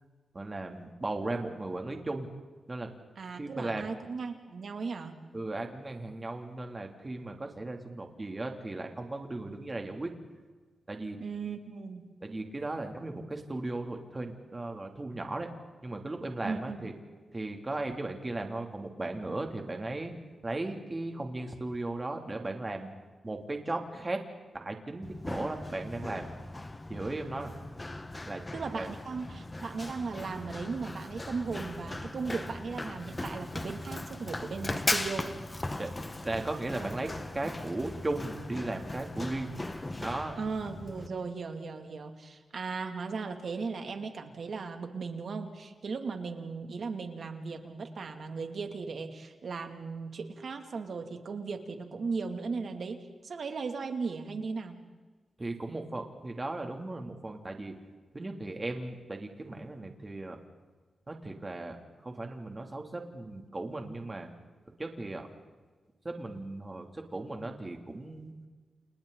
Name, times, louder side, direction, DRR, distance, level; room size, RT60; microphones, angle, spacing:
voice 1, 0.3-2.3 2.7-2.9 3.3-3.8 5.3-10.1 10.9-11.2 12.2-15.5 15.8-16.9 17.3-20.1 20.4-22.9 23.2-24.2 24.5-26.3 26.9-27.5 28.2-28.4 28.7-28.9 35.8-35.9 36.2-39.5 40.0-40.3 55.4-57.7 58.1-60.4 61.1-61.8 62.0-64.3 64.8-65.3 66.0-68.3, right 2 dB, 20° right, 3 dB, 2.9 m, -36 dB
voice 2, 3.2-5.2 11.2-12.1 16.4-16.8 28.5-35.4 40.4-54.8, right 4 dB, 55° right, 5 dB, 2.6 m, -37 dB
Run, 25.0-41.1, left 2 dB, 15° left, 1.3 m, -38 dB
30.0 x 29.0 x 4.0 m, 1.4 s
wide cardioid pair, 140°, 0 cm